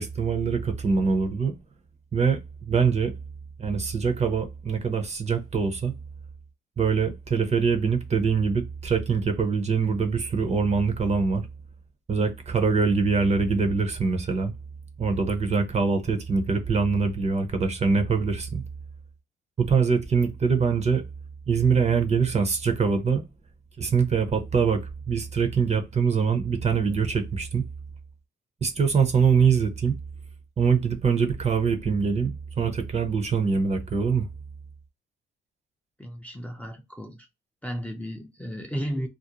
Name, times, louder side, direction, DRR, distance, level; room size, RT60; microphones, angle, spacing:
voice 1, 0.0-1.5 2.1-3.1 3.6-5.9 6.8-11.4 12.1-14.5 15.0-18.6 19.6-21.0 21.5-23.2 23.8-27.6 28.6-29.9 30.6-34.3, right 5 dB, 35° right, 0.7 m, -24 dB
voice 2, 36.0-37.3 37.6-39.1, equal, 5° left, 0.5 m, -34 dB
2.5 x 2.0 x 2.9 m
cardioid pair, 90°, 20 cm